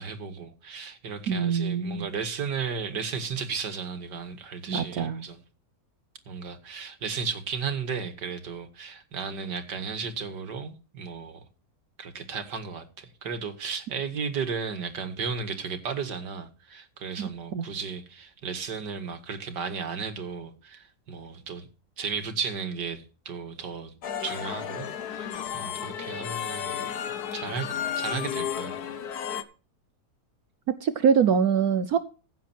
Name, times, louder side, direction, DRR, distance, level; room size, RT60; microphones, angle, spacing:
voice 1, 0.0-5.4 6.3-11.4 12.0-21.7 22.0-23.9 24.2-26.9 27.3-28.7, right 5 dB, 80° right, 2.4 m, -34 dB
voice 2, 1.3-2.1 4.7-5.2 17.2-17.6 30.7-32.0, right 7 dB, 65° right, 1.3 m, -24 dB
sound 1, 24.0-29.4, left 9 dB, 65° left, 1.5 m, -33 dB
15.5 x 7.5 x 4.5 m
omnidirectional pair, 1.8 m